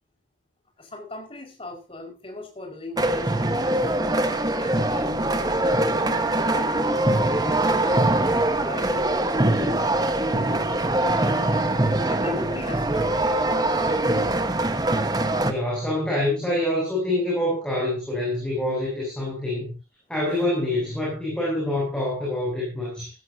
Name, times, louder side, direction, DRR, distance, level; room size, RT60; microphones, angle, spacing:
voice 1, 0.8-4.0 4.5-11.3 11.8-13.9 14.3-14.4, left 2 dB, 30° left, 3 dB, 5.1 m, -39 dB
sound 1, 3.0-15.5, right 1 dB, 20° right, 1.3 m, -23 dB
voice 2, 15.4-19.7 20.1-23.1, left 1 dB, 5° left, -4 dB, 7.6 m, -26 dB
16.0 x 15.5 x 2.8 m, 0.31 s
head